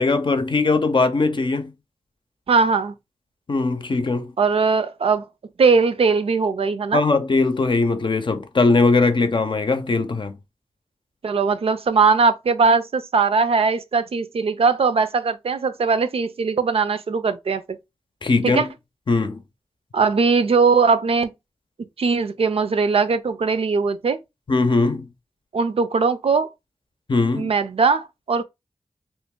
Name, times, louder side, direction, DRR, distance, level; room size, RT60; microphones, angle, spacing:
voice 1, 0.0-1.7 3.5-4.3 6.9-10.4 18.2-18.7 19.1-19.4 24.5-25.1 27.1-27.5, left 3 dB, 50° left, 0.6 m, -20 dB
voice 2, 2.5-2.9 4.4-5.2 5.6-7.0 11.2-17.8 18.4-18.7 19.9-21.3 22.0-24.2 25.5-26.5 27.3-28.4, right 4 dB, 70° right, 0.5 m, -20 dB
3.0 x 2.5 x 3.6 m
cardioid pair, 55°, 10 cm